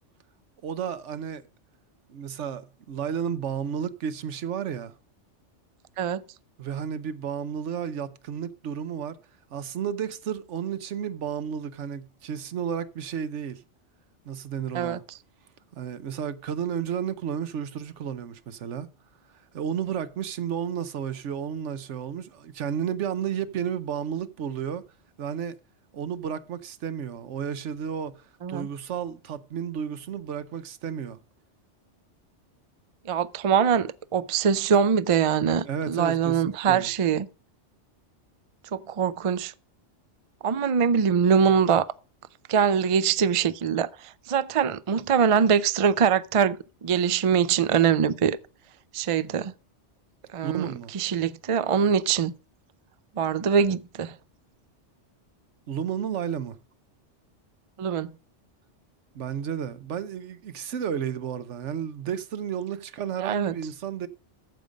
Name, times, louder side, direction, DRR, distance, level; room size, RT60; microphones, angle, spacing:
voice 1, 0.6-1.4 2.1-4.9 6.6-9.2 9.5-13.6 14.3-15.0 15.7-18.9 19.5-24.8 25.2-25.5 25.9-28.1 28.5-31.2 35.6-36.9 50.4-50.9 55.7-56.6 59.1-64.1, right 8 dB, 75° right, 1.1 m, -32 dB
voice 2, 33.1-37.3 38.7-39.5 40.4-41.9 42.5-46.6 46.8-48.4 48.9-49.5 50.3-52.3 53.2-54.1 57.8-58.1 63.2-63.5, right 7 dB, 50° right, 0.4 m, -23 dB
14.5 x 5.2 x 5.1 m
omnidirectional pair, 1.2 m